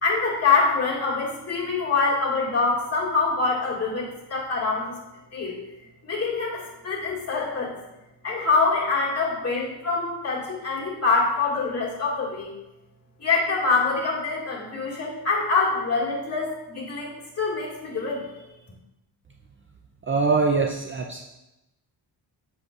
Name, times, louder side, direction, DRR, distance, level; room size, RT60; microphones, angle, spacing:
voice 1, 0.0-4.9 5.3-5.6 6.0-7.8 8.2-12.5 13.2-18.2, left 4 dB, 35° left, -4 dB, 2.1 m, -25 dB
voice 2, 20.1-21.2, right 4 dB, 30° right, 1 dB, 0.5 m, -23 dB
7.5 x 6.2 x 2.5 m, 0.95 s
cardioid pair, 100°, 42 cm